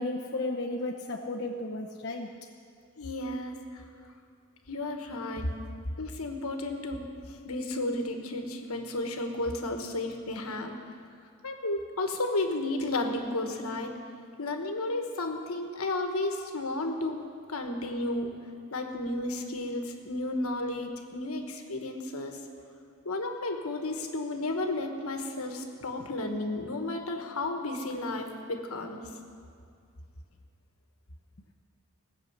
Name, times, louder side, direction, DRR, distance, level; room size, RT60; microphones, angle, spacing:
voice 1, 0.0-2.3, left 2 dB, 50° left, -2 dB, 0.9 m, -33 dB
voice 2, 3.0-3.8 4.7-5.5 6.0-10.8 11.4-13.9 14.4-17.2 17.5-18.3 18.7-22.4 23.0-29.1, left 2 dB, 75° left, 4 dB, 1.4 m, -33 dB
19.5 x 6.5 x 8.0 m, 2.3 s
head